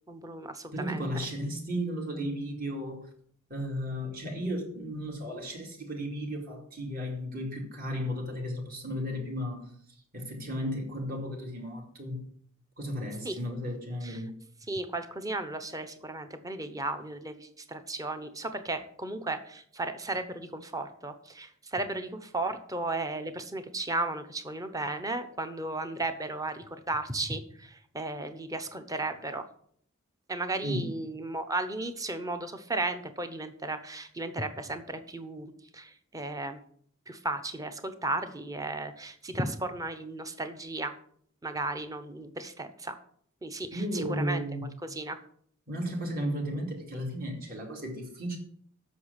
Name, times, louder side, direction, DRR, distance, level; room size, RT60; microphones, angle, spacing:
voice 1, 0.1-1.1 13.2-13.4 14.0-14.2 14.7-29.4 30.3-36.6 37.1-40.9 41.4-43.0 43.4-44.5 44.8-45.2, right 2 dB, 15° right, 8 dB, 0.9 m, -35 dB
voice 2, 0.7-3.1 3.5-9.7 10.1-12.2 12.8-14.3 30.6-30.9 43.7-44.7 45.7-48.4, equal, 45° right, 0 dB, 2.5 m, -34 dB
8.3 x 6.5 x 8.2 m, 0.62 s
head